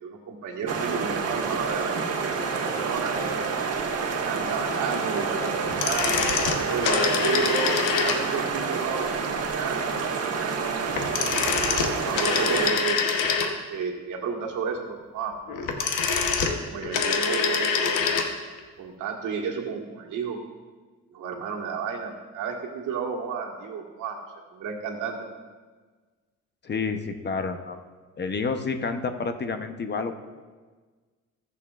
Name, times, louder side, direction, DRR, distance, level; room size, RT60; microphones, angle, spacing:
voice 1, 0.0-3.1 4.2-6.2 6.6-9.1 9.4-10.8 11.1-11.2 12.1-13.0 13.5-15.3 16.6-18.1 18.8-20.4 21.1-24.2 24.5-25.3, right 6 dB, 85° right, 0 dB, 1.7 m, -32 dB
sound 1, 0.7-12.7, right 5 dB, 55° right, 1.4 m, -29 dB
sound 2, 2.0-7.1, right 2 dB, 10° left, 3.2 m, -38 dB
sound 3, 5.6-8.5 10.9-13.8 15.5-18.3 18.6-18.7, left 5 dB, 90° left, 1.1 m, -25 dB
voice 2, 26.6-27.8 28.2-30.2, left 4 dB, 35° left, 7 dB, 0.9 m, -29 dB
20.0 x 7.0 x 2.5 m, 1.4 s
cardioid pair, 90°, 30 cm